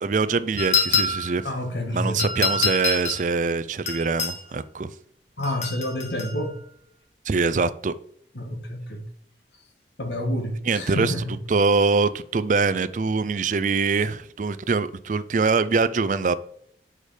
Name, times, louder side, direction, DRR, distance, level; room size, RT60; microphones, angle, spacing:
voice 1, 0.0-1.5 1.9-4.9 7.3-7.9 10.7-11.1 11.5-16.3, right 4 dB, 45° right, 0.4 m, -23 dB
sound 1, 0.6-1.4 2.2-3.3 3.9-4.4 5.4-6.3, left 5 dB, 40° left, 1.5 m, -25 dB
voice 2, 1.4-2.3 5.4-6.6 8.3-9.0 10.0-11.4, left 1 dB, 75° left, 1.7 m, -28 dB
6.5 x 5.0 x 4.9 m
head